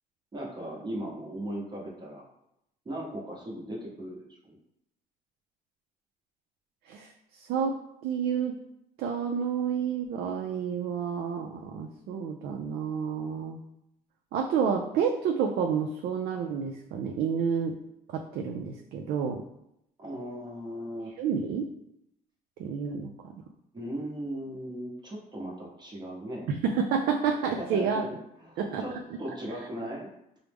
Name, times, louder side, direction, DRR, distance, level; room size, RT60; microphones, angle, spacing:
voice 1, 0.3-2.2 2.8-4.6 20.0-21.1 23.7-26.5 27.6-28.1 28.4-30.1, right 1 dB, 25° right, -3 dB, 0.8 m, -37 dB
voice 2, 6.9-7.8 8.0-8.5 9.0-13.6 14.3-17.8 18.1-19.4 21.1-21.7 22.6-23.4 26.5-28.0 28.6-28.8 29.6-29.7, right 6 dB, 70° right, 2 dB, 0.4 m, -29 dB
4.5 x 2.0 x 3.4 m, 0.81 s
cardioid pair, 110°, 17 cm